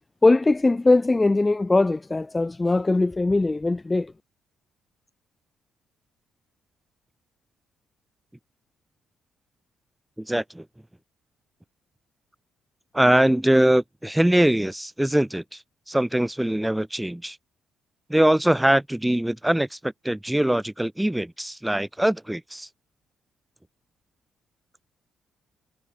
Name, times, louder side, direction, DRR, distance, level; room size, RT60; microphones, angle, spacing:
voice 1, 0.2-4.1, left 2 dB, 20° left, 1.3 m, -20 dB
voice 2, 10.2-10.6 12.9-15.6 15.9-17.4 18.1-22.7, right 1 dB, 5° right, 4.1 m, -22 dB
cardioid pair, 90°, 0 cm